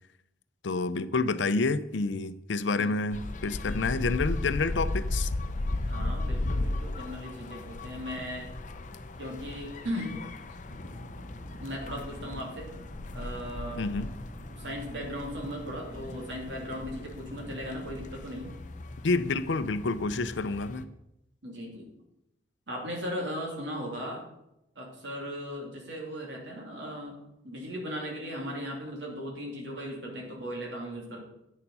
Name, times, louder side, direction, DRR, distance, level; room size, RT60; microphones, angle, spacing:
voice 1, 0.6-5.3 13.8-14.1 19.0-20.9, left 3 dB, 85° left, 13 dB, 0.6 m, -28 dB
sound 1, 3.1-20.8, left 2 dB, 45° left, 0.6 m, -36 dB
voice 2, 5.9-8.5 9.2-10.2 11.6-12.7 13.1-13.8 14.5-18.6 21.4-21.9 22.7-24.3 24.8-27.2 27.4-31.2, equal, 75° right, 0 dB, 2.8 m, -37 dB
sound 2, 10.7-18.0, equal, 20° right, 2.7 m, -47 dB
9.5 x 6.9 x 5.5 m, 0.85 s
head